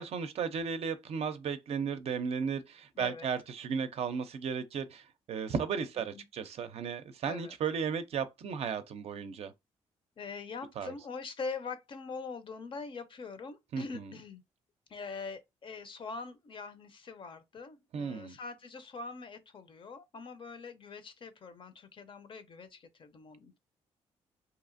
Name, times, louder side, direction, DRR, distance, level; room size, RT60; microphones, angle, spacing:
voice 1, 0.0-9.5 10.8-10.9 13.7-14.1 17.9-18.4, right 6 dB, 60° right, 0.4 m, -35 dB
voice 2, 2.9-3.3 6.1-6.2 7.3-7.5 10.2-14.4 14.9-23.6, left 4 dB, 45° left, 0.5 m, -43 dB
2.8 x 2.4 x 2.5 m
cardioid pair, 85°, 12 cm